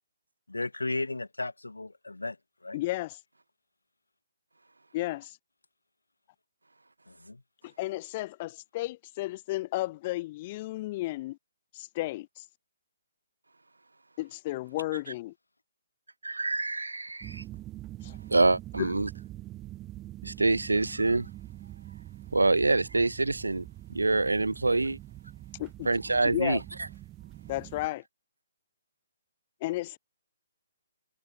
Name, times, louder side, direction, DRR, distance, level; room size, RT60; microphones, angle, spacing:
voice 1, 0.5-2.4 2.6-2.8 7.1-7.4, left 2 dB, 90° left, 0.9 m, -35 dB
voice 2, 2.7-3.2 4.9-5.4 7.6-11.4 11.7-12.4 14.2-15.3 18.0-18.2 18.8-18.9 25.6-25.9 26.2-26.6 27.5-28.0 29.6-30.0, left 18 dB, 35° left, 0.6 m, -33 dB
voice 3, 16.2-17.4 18.3-19.1 20.2-21.3 22.3-23.6 23.9-25.0 25.9-26.6, right 3 dB, 85° right, 0.7 m, -25 dB
sound 1, 17.2-27.9, right 15 dB, 20° right, 0.8 m, -44 dB
figure-of-eight pair, 140°, 0 cm